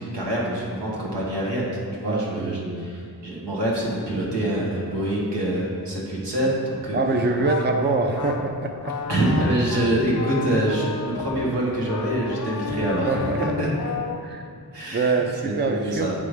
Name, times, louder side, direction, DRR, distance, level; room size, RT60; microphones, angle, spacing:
voice 1, 0.0-7.0 9.1-13.7 14.7-16.1, right 1 dB, 90° right, -5 dB, 1.5 m, -25 dB
voice 2, 2.0-2.9 6.9-8.9 10.5-10.6 13.0-13.7 14.2-14.5 14.9-16.1, right 3 dB, 25° right, 4 dB, 0.5 m, -25 dB
sound 1, 7.2-14.3, left 5 dB, 50° left, 0.5 m, -33 dB
7.8 x 3.4 x 4.9 m, 2.4 s
cardioid pair, 60°, 40 cm